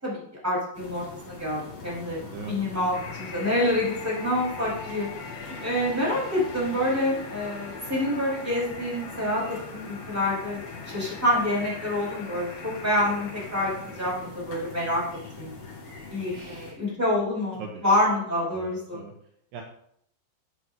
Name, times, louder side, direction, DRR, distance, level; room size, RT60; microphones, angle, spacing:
voice 1, 0.0-5.1 5.5-10.6 10.8-15.0 15.3-15.5 16.1-19.0, left 1 dB, 5° right, -5 dB, 4.6 m, -27 dB
sound 1, 0.7-16.7, left 4 dB, 35° left, 3.9 m, -42 dB
voice 2, 2.2-2.5 16.3-16.8 17.6-17.8 18.5-19.1 19.5-19.6, right 5 dB, 75° right, 1 dB, 2.8 m, -40 dB
sound 2, 2.9-14.1, left 3 dB, 65° left, 4.7 m, -42 dB
12.5 x 10.5 x 2.9 m, 0.70 s
omnidirectional pair, 5.2 m